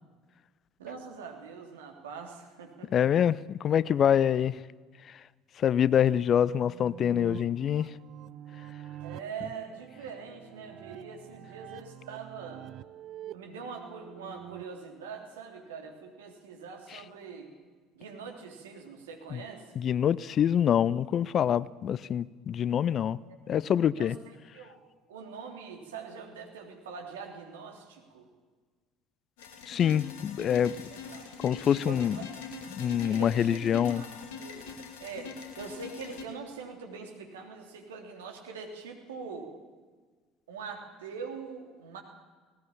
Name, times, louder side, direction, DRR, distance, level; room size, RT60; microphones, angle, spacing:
voice 1, 0.8-2.9 9.0-12.7 13.3-17.5 17.9-19.8 23.3-23.4 24.0-24.1 24.5-24.8 25.1-28.2 30.9-31.3 31.8-32.2 33.1-34.1 34.4-34.7 35.0-39.5 40.5-42.0, right 5 dB, 75° right, 3 dB, 3.2 m, -43 dB
voice 2, 2.8-4.6 5.0-5.2 5.6-8.0 16.9-17.0 19.3-19.4 19.8-23.2 23.5-24.2 29.7-30.8 31.4-32.2 32.7-34.0, left 9 dB, 45° left, 21 dB, 0.6 m, -26 dB
sound 1, 5.9-14.6, right 12 dB, 50° right, 0.6 m, -47 dB
sound 2, 29.4-36.2, left 5 dB, 70° left, 2.6 m, -43 dB
19.0 x 18.5 x 8.6 m, 1.4 s
figure-of-eight pair, 60°, 0 cm